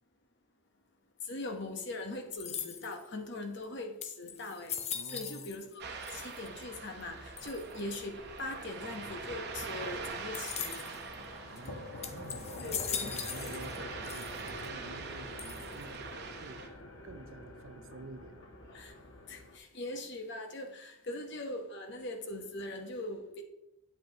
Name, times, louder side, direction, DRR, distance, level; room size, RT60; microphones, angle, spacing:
voice 1, 1.3-4.8 5.1-5.8 6.1-10.9 12.6-13.1 18.7-18.9 19.3-23.4, left 2 dB, 60° left, 1.2 m, -41 dB
sound 1, 2.3-3.1 3.6-3.7 4.0-5.8 6.0-6.6 7.4-7.8 10.3-11.0 11.6-11.7 12.0-13.8 14.0-14.7 15.4-16.0, left 8 dB, 30° left, 0.6 m, -40 dB
voice 2, 4.9-5.5 11.4-18.5, right 3 dB, 75° right, 0.6 m, -50 dB
Ocean, 5.8-16.7, right 4 dB, 55° right, 1.0 m, -44 dB
sound 2, 8.2-19.6, left 2 dB, 85° left, 1.2 m, -47 dB
8.9 x 8.0 x 3.0 m
head